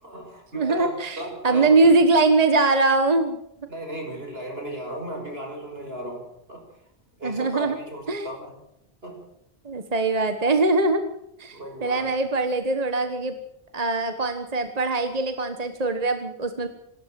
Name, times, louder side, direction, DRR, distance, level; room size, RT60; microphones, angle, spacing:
voice 1, 0.0-2.0 3.7-6.6 7.2-8.6 9.0-9.3 11.5-12.1, right 1 dB, 70° right, 3 dB, 5.9 m, -35 dB
voice 2, 0.5-3.4 7.2-7.8 8.1-8.3 9.6-11.0 11.4-13.3 13.7-16.7, right 3 dB, 40° right, 8 dB, 1.4 m, -22 dB
27.5 x 13.0 x 7.6 m, 0.79 s
omnidirectional pair, 1.0 m